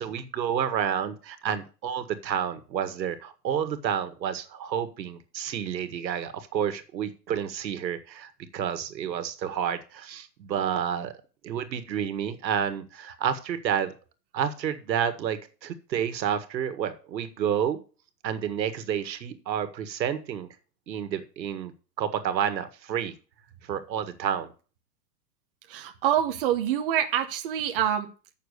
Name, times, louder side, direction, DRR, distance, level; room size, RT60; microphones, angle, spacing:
voice 1, 0.0-11.1 11.4-13.9 14.3-17.8 18.2-20.5 20.9-21.7 22.0-23.1 23.6-24.5, right 8 dB, 90° right, 10 dB, 1.8 m, -30 dB
voice 2, 25.7-28.1, right 10 dB, 35° right, 4 dB, 1.0 m, -26 dB
8.1 x 6.6 x 6.7 m, 0.36 s
hypercardioid pair, 165°, 50 cm